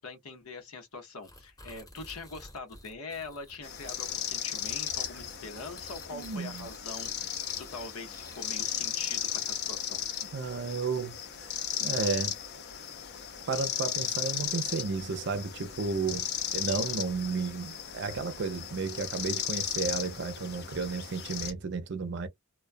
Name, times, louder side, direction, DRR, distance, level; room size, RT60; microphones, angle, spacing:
voice 1, 0.0-10.0, left 3 dB, 90° left, 0.8 m, -43 dB
sound 1, 1.2-9.7, left 1 dB, 15° left, 0.9 m, -52 dB
sound 2, 3.6-21.5, left 9 dB, 50° left, 0.6 m, -36 dB
voice 2, 6.1-6.7 10.3-12.3 13.5-16.3 16.5-22.3, right 4 dB, 55° right, 0.5 m, -33 dB
2.2 x 2.2 x 2.5 m
head